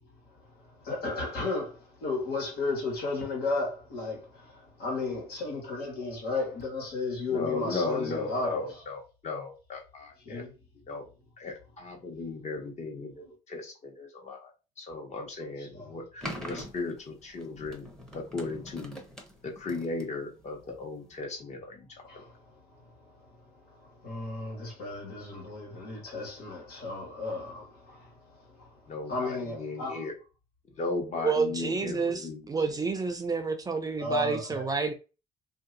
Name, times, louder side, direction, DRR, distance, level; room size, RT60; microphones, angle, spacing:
voice 1, 0.8-4.3 4.8-8.6 10.3-10.5 15.7-15.9 24.0-27.7 29.1-30.0 34.0-34.7, left 3 dB, 70° left, 1.5 m, -33 dB
voice 2, 7.3-10.4 10.9-11.0 11.4-14.5 14.8-17.9 18.1-19.0 19.4-21.9 22.1-22.2 28.9-30.1 30.8-32.5, left 3 dB, 40° left, 1.1 m, -36 dB
sound 1, 16.2-21.1, equal, 5° left, 0.8 m, -43 dB
voice 3, 31.1-34.9, right 4 dB, 20° right, 0.4 m, -29 dB
2.6 x 2.2 x 3.8 m
cardioid pair, 110°, 17 cm